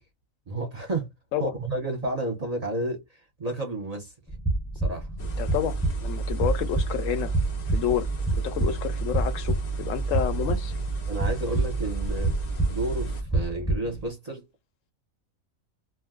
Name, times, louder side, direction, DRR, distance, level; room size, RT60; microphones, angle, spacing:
voice 1, 0.5-1.1 1.4-4.1 4.8-5.1 11.1-12.4 12.7-14.5, right 2 dB, 35° right, 0.8 m, -31 dB
sound 1, 4.3-14.1, right 2 dB, 5° left, 0.6 m, -29 dB
voice 2, 5.2-7.3 7.7-8.1 8.4-10.7, left 9 dB, 70° left, 0.9 m, -29 dB
sound 2, 5.2-13.2, right 4 dB, 50° left, 0.5 m, -31 dB
2.5 x 2.2 x 3.6 m
omnidirectional pair, 1.4 m